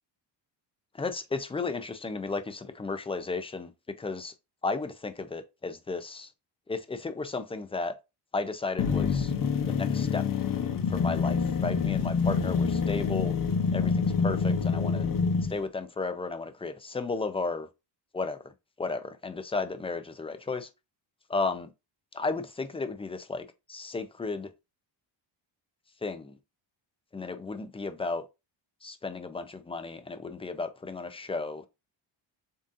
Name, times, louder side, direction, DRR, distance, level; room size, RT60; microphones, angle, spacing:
voice 1, 1.0-3.7 4.0-4.3 4.6-6.3 6.7-8.0 8.3-9.3 9.7-10.3 10.9-13.3 13.7-15.1 15.5-17.7 18.1-18.4 18.8-20.7 21.3-21.7 22.1-24.5 26.0-26.4 27.1-28.3 28.8-31.7, left 3 dB, 15° left, 0.3 m, -34 dB
sound 1, 8.8-15.6, left 5 dB, 45° left, 0.8 m, -27 dB
7.2 x 2.7 x 2.5 m
cardioid pair, 135°, 47 cm